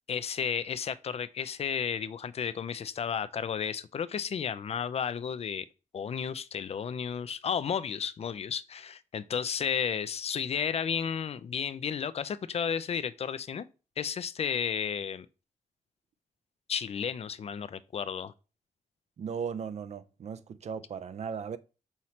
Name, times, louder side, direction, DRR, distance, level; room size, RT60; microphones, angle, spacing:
voice 1, 0.1-5.6 5.9-13.7 14.0-15.3 16.7-18.3, left 7 dB, 50° left, 0.4 m, -33 dB
voice 2, 19.2-21.6, right 6 dB, 55° right, 0.4 m, -37 dB
5.7 x 3.1 x 2.7 m
cardioid pair, 90°, 14 cm